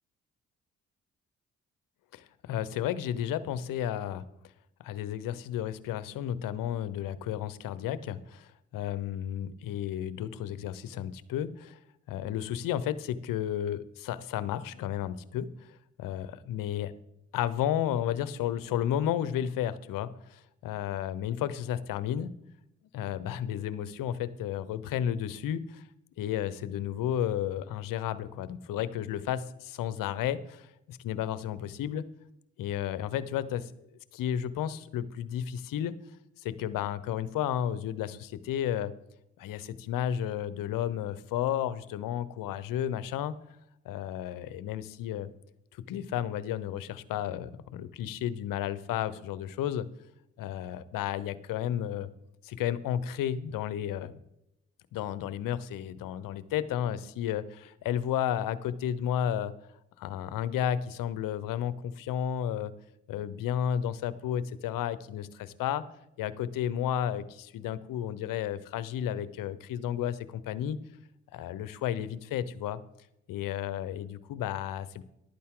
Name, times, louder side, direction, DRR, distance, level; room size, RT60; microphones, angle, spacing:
voice 1, 2.1-4.3 4.8-11.8 12.1-15.5 16.0-16.9 17.3-22.3 22.9-25.8 26.2-32.0 32.6-33.7 34.1-36.0 36.4-38.9 39.4-43.3 43.8-45.3 45.9-49.9 50.4-52.1 52.4-54.2 54.9-59.5 60.0-62.7 63.1-65.8 66.2-70.8 71.3-72.8 73.3-75.0, left 10 dB, 70° left, 16 dB, 1.0 m, -32 dB
14.0 x 12.0 x 3.9 m, 0.86 s
hypercardioid pair, 45°, 34 cm